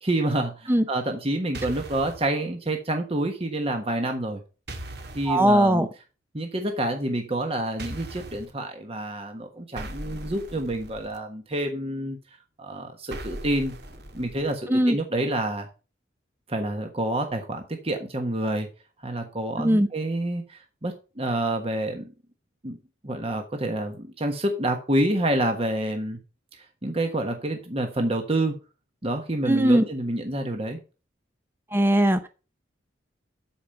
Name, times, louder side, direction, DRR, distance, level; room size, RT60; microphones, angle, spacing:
voice 1, 0.0-4.4 5.1-5.9 6.3-12.2 12.6-13.8 14.1-15.7 16.5-18.7 19.0-22.0 22.6-22.8 23.0-26.2 26.5-28.6 29.0-30.8, right 1 dB, 30° right, 4 dB, 1.3 m, -28 dB
sound 1, 1.5-2.3 4.7-5.4 7.8-8.5 9.8-11.2 13.1-14.5, right 1 dB, 55° right, 1.8 m, -39 dB
voice 2, 5.3-5.9 14.7-15.0 19.6-19.9 29.5-29.8 31.7-32.3, right 1 dB, 10° right, 8 dB, 0.7 m, -19 dB
13.0 x 5.1 x 5.7 m, 0.33 s
head